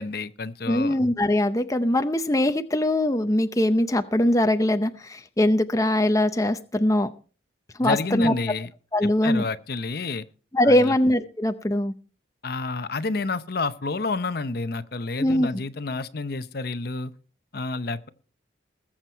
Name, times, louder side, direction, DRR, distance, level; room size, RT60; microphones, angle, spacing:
voice 1, 0.0-1.0 7.8-8.7 9.0-10.3 10.6-10.9 12.4-17.1 17.5-18.1, left 3 dB, 50° left, 13 dB, 0.7 m, -29 dB
voice 2, 0.7-7.1 7.8-8.3 8.9-9.5 10.5-11.9 15.2-15.5, left 1 dB, 15° left, 8 dB, 0.6 m, -22 dB
20.5 x 7.4 x 4.6 m, 0.38 s
head